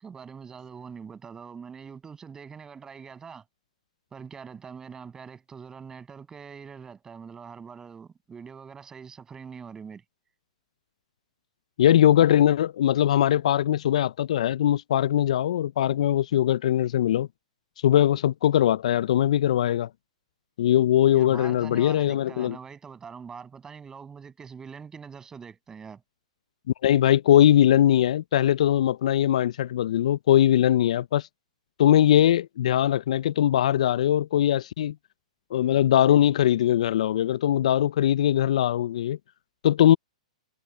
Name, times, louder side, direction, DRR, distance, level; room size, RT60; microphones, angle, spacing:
voice 1, 0.0-3.4 4.1-10.0 21.1-26.0, right 6 dB, 15° right, 7.5 m, -43 dB
voice 2, 11.8-17.3 17.8-19.9 20.6-22.6 26.8-31.3 31.8-34.9 35.5-39.2 39.6-40.0, left 11 dB, 65° left, 0.4 m, -21 dB
hypercardioid pair, 125°, 4 cm